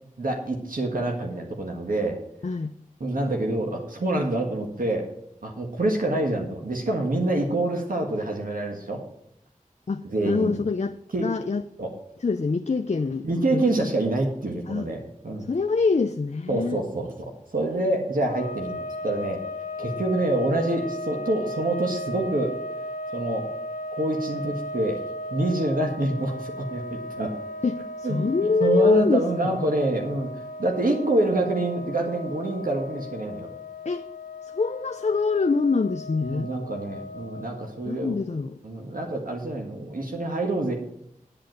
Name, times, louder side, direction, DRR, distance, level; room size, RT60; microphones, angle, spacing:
voice 1, 0.2-2.2 3.0-5.1 5.4-9.1 10.0-10.6 11.1-11.3 11.8-11.9 13.2-15.5 16.5-19.4 19.8-22.5 23.1-23.5 23.9-25.0 25.3-27.3 28.0-28.3 28.6-30.3 30.6-33.5 36.3-38.1 38.6-40.7, right 2 dB, 80° right, 1 dB, 1.7 m, -26 dB
voice 2, 2.4-2.8 9.9-11.0 11.2-11.6 12.2-13.9 14.7-14.9 15.5-16.8 27.6-29.2 33.9-34.0 34.4-36.5 37.8-38.6, left 4 dB, 55° left, 8 dB, 0.5 m, -24 dB
sound 1, 18.2-37.8, left 1 dB, 75° left, 0.8 m, -36 dB
9.8 x 8.1 x 6.4 m, 0.74 s
wide cardioid pair, 45°, 14 cm